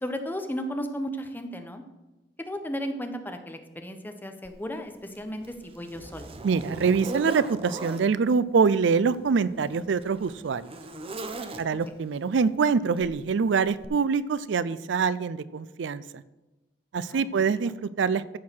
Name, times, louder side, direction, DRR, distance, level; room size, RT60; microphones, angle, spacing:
voice 1, 0.0-1.8 2.5-6.3 17.0-17.7, equal, 10° left, 6 dB, 0.9 m, -35 dB
Zipper (clothing), 4.4-4.6 5.1-8.1 9.0-12.0 13.0-13.2 13.8-13.9, right 2 dB, 30° right, 0.8 m, -39 dB
voice 2, 6.4-10.7 11.6-16.2 16.9-18.4, right 5 dB, 75° right, 17 dB, 0.4 m, -25 dB
14.0 x 4.7 x 6.2 m, 1.0 s
head